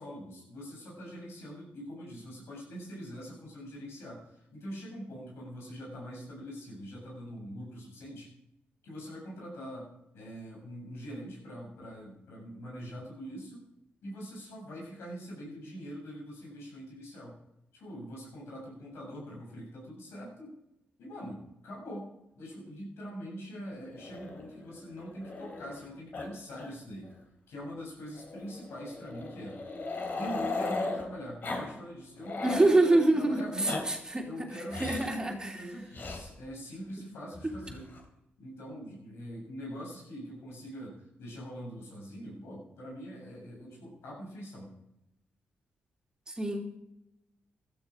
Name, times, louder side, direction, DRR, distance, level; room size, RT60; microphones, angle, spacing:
voice 1, 0.0-8.3 8.8-9.9 10.1-13.6 14.0-17.3 17.7-20.5 21.0-22.1 22.4-27.1 27.5-29.6 30.2-33.8 34.2-37.9 38.4-44.7, equal, 90° left, -3 dB, 7.6 m, -43 dB
Growling, 24.0-25.8 26.1-26.3 26.5-26.7 27.0-27.1 28.2-31.0 31.4-31.7 32.0-32.7 33.4-33.8 34.7-35.1 35.9-36.2 37.3-38.0, left 3 dB, 50° left, 3.4 m, -37 dB
voice 2, 32.4-34.3 34.8-35.6 37.4-37.5 46.3-46.6, right 2 dB, 20° right, 2 dB, 3.0 m, -26 dB
16.0 x 12.5 x 5.0 m, 0.87 s
cardioid pair, 85°, 4 cm